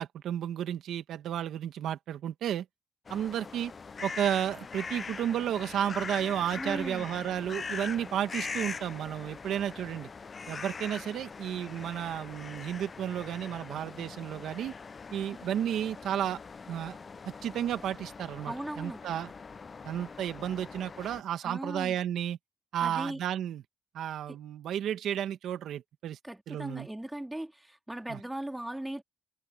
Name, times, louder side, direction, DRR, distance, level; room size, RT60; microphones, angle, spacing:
voice 1, 0.0-2.7 3.1-3.7 4.0-10.1 10.5-14.7 15.1-16.4 16.7-17.0 17.3-19.3 19.8-22.4 22.7-23.6 23.9-26.2 26.5-26.9 28.1-28.2, right 10 dB, 75° right, 1.8 m, -32 dB
sound 1, 3.1-21.2, left 5 dB, 35° left, 0.6 m, -42 dB
voice 2, 6.6-7.1 18.5-19.0 21.4-22.0 22.8-23.2 24.3-24.4 26.2-29.0, right 1 dB, 10° right, 3.0 m, -38 dB
cardioid pair, 90°, 0 cm